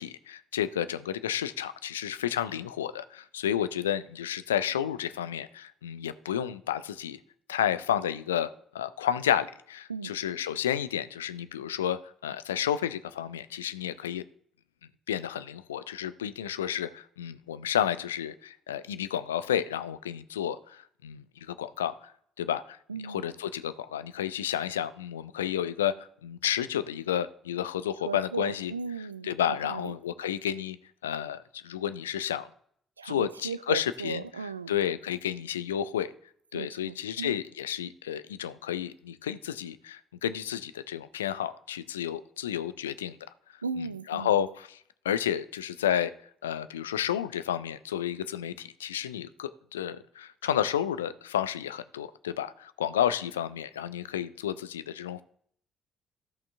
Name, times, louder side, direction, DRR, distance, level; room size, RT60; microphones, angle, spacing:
voice 1, 0.0-7.2 7.5-14.2 15.1-21.9 22.4-22.8 23.0-26.0 26.2-28.7 29.2-30.8 31.0-31.4 31.6-32.5 33.0-34.2 34.7-36.1 36.5-43.1 44.1-44.8 45.0-46.1 46.4-55.2, left 10 dB, 80° left, 14 dB, 0.4 m, -31 dB
voice 2, 22.9-23.2 28.0-30.0 33.0-34.8 36.5-37.4 43.6-44.4, right 5 dB, 85° right, 15 dB, 0.3 m, -37 dB
15.0 x 5.5 x 3.4 m, 0.66 s
figure-of-eight pair, 45°, 0 cm